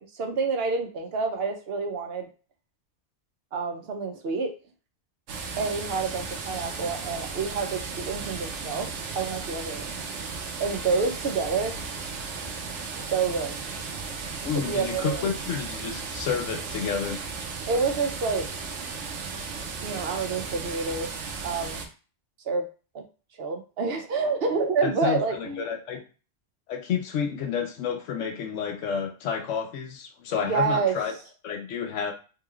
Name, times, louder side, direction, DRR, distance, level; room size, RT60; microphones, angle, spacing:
voice 1, 0.0-2.3 3.5-4.5 5.6-8.9 9.1-9.9 10.6-11.8 13.1-13.6 14.7-15.3 17.7-18.5 19.8-21.1 21.4-21.9 22.4-22.7 22.9-23.0 23.3-25.7 30.4-30.9, right 4 dB, 65° right, 4 dB, 0.8 m, -28 dB
sound 1, 5.3-21.9, right 4 dB, 90° right, 1.0 m, -35 dB
voice 2, 14.4-17.2 24.8-26.0 26.7-31.1 31.4-32.1, left 7 dB, 85° left, 4 dB, 1.0 m, -30 dB
3.7 x 3.1 x 2.3 m, 0.35 s
omnidirectional pair, 1.2 m